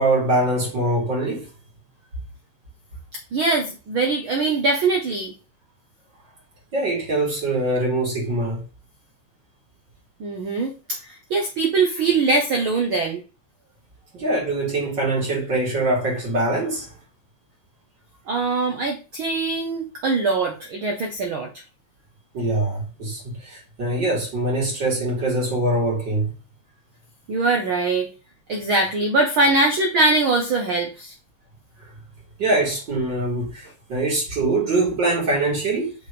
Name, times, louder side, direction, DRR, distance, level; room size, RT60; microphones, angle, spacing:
voice 1, 0.0-1.5 6.7-8.6 14.1-16.9 22.3-26.3 32.4-35.9, right 2 dB, 35° right, 3.9 m, -23 dB
voice 2, 3.3-5.3 10.2-13.2 18.3-21.5 27.3-28.1 28.5-31.1, right 3 dB, 80° right, 1.1 m, -22 dB
6.6 x 5.1 x 3.3 m
omnidirectional pair, 3.8 m